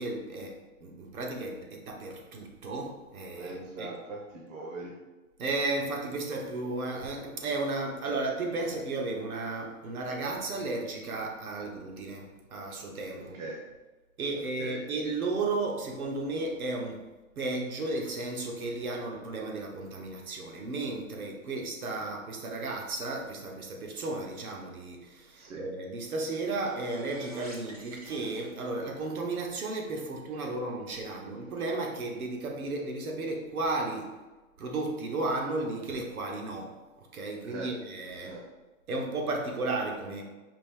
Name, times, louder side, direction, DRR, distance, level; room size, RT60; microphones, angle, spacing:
voice 1, 0.0-3.9 5.4-13.4 14.2-17.0 17.4-34.2 34.6-36.8 37.1-38.3 38.9-40.2, right 2 dB, 85° right, 1 dB, 1.1 m, -34 dB
voice 2, 3.4-4.9 13.2-13.6 14.3-14.8 22.0-22.1 25.4-25.6 37.5-37.7 38.2-38.4, right 2 dB, 60° right, -1 dB, 0.9 m, -41 dB
sound 1, 26.0-29.0, right 1 dB, 30° right, 0.5 m, -49 dB
5.1 x 2.6 x 3.7 m, 1.2 s
hypercardioid pair, 170°, 42 cm